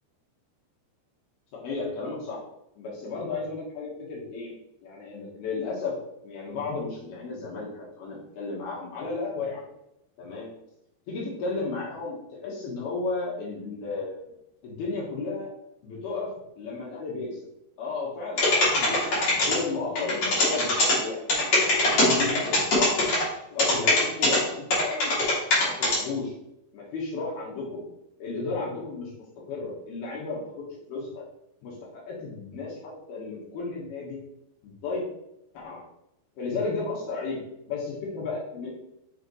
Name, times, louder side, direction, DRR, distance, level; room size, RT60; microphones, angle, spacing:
voice 1, 1.5-2.4 2.8-4.5 4.8-5.9 6.2-9.7 10.2-10.5 11.1-14.3 14.6-15.5 15.8-16.3 16.6-17.4 17.8-19.0 19.3-23.0 23.5-25.2 25.4-26.3 26.7-27.8 28.2-29.1 29.5-31.2 31.6-34.2 34.6-35.1 35.5-35.8 36.4-37.4 37.7-38.7, left 3 dB, 65° left, -4 dB, 2.9 m, -33 dB
sound 1, 18.4-19.6 20.0-20.9 21.3-23.2 23.6-24.4 24.7-26.0, left 2 dB, 40° left, 2.8 m, -21 dB
7.8 x 5.2 x 3.1 m, 0.82 s
omnidirectional pair, 5.6 m